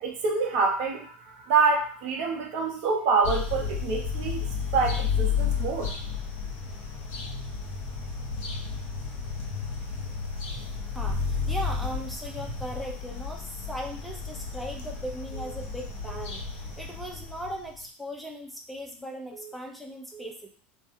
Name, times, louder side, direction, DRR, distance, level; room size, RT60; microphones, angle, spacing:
voice 1, 0.0-6.0, right 4 dB, 70° right, 1 dB, 0.7 m, -26 dB
sound 1, 3.2-17.8, left 5 dB, 55° left, 0.8 m, -32 dB
voice 2, 10.9-20.5, equal, ahead, 1 dB, 0.7 m, -38 dB
2.5 x 2.1 x 2.5 m, 0.41 s
hypercardioid pair, 90°, 6 cm